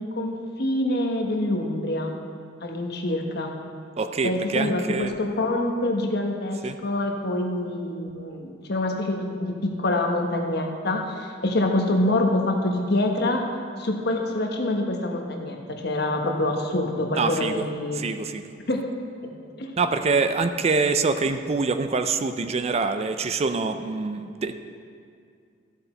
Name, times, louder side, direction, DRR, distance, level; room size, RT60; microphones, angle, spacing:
voice 1, 0.0-2.1 2.6-3.5 4.2-13.4 13.8-18.0 18.7-18.8 19.2-19.7, left 1 dB, 60° left, 2 dB, 1.2 m, -26 dB
voice 2, 4.0-5.1 6.6-6.8 17.1-17.7 17.9-18.4 19.8-24.6, right 4 dB, 35° right, 9 dB, 0.4 m, -25 dB
14.0 x 6.7 x 4.4 m, 2.3 s
head